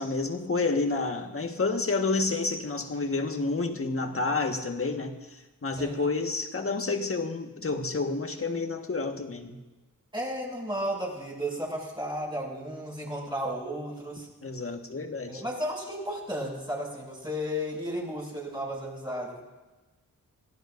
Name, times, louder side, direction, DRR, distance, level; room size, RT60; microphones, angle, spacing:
voice 1, 0.0-5.1 5.6-9.6 14.4-15.4, left 3 dB, 40° left, 4 dB, 1.6 m, -29 dB
voice 2, 10.1-14.3 15.3-19.4, equal, 15° right, -4 dB, 7.1 m, -33 dB
25.0 x 17.5 x 2.7 m, 1.1 s
wide cardioid pair, 85°, 34 cm